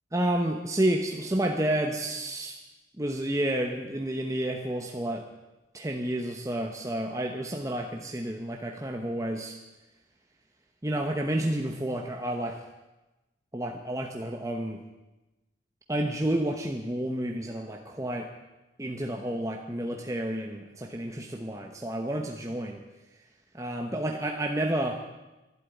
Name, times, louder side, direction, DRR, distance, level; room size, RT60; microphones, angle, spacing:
voice 1, 0.1-2.6 3.0-5.3 5.7-9.6 10.8-12.6 13.5-14.8 15.9-18.3 18.8-22.8 23.5-25.0, right 1 dB, 20° right, 2 dB, 1.0 m, -30 dB
12.0 x 11.5 x 9.1 m, 1.1 s
head